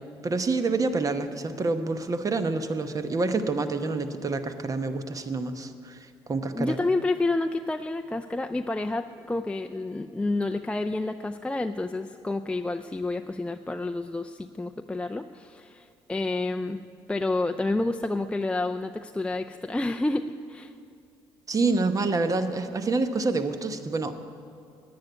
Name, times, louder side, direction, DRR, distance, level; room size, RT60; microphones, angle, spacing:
voice 1, 0.2-6.8 21.5-24.1, right 3 dB, 35° right, 9 dB, 1.0 m, -27 dB
voice 2, 6.5-16.8 17.1-20.7, left 2 dB, 10° left, 5 dB, 0.4 m, -29 dB
10.5 x 9.6 x 9.3 m, 2.5 s
supercardioid pair, 75°, 10 cm